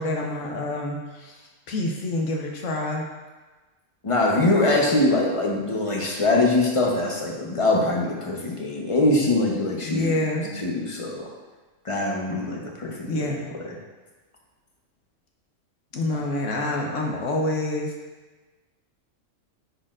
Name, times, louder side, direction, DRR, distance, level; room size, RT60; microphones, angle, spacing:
voice 1, 0.0-1.4 1.7-3.0 9.8-10.6 13.1-13.5 15.9-17.9, left 2 dB, 70° left, 0 dB, 1.1 m, -27 dB
voice 2, 4.0-10.1 10.6-11.2 11.8-13.3, left 2 dB, 25° left, -2 dB, 0.9 m, -23 dB
10.0 x 4.3 x 2.5 m, 1.2 s
omnidirectional pair, 1.4 m